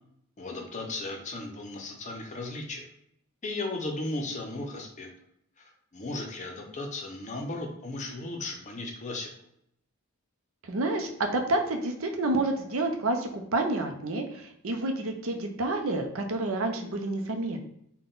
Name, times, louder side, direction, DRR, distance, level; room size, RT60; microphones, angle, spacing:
voice 1, 0.4-2.9 3.4-5.1 5.6-9.3, left 2 dB, 30° left, 2 dB, 0.6 m, -36 dB
voice 2, 10.6-17.6, right 2 dB, 65° right, 5 dB, 0.6 m, -29 dB
3.8 x 2.2 x 3.8 m, 0.74 s
head